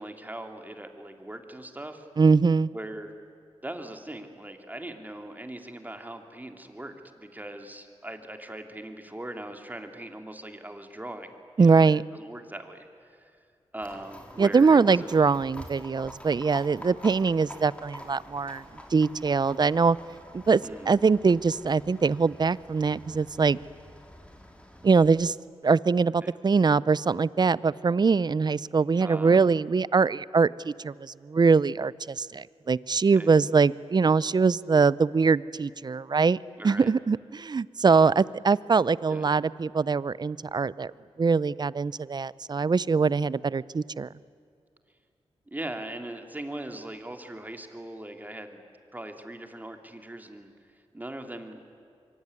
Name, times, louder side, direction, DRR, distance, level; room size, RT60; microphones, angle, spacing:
voice 1, 0.0-2.1 2.7-3.1 3.6-13.2 13.7-15.1 20.6-20.9 26.2-26.3 29.0-29.5 33.1-33.3 36.6-36.9 39.1-39.2 45.5-48.6 48.9-50.5 50.9-51.6, right 1 dB, 15° right, 5 dB, 3.0 m, -40 dB
voice 2, 2.2-2.7 11.6-12.0 14.4-18.6 18.9-20.0 20.3-20.6 20.9-23.6 24.8-25.3 25.6-36.4 36.6-40.9 41.2-44.1, right 4 dB, 40° right, 20 dB, 0.6 m, -23 dB
Livestock farm animals working animals, 13.8-25.1, equal, 10° left, 4.0 m, -47 dB
25.0 x 24.5 x 9.8 m, 2.4 s
cardioid pair, 65°, 10 cm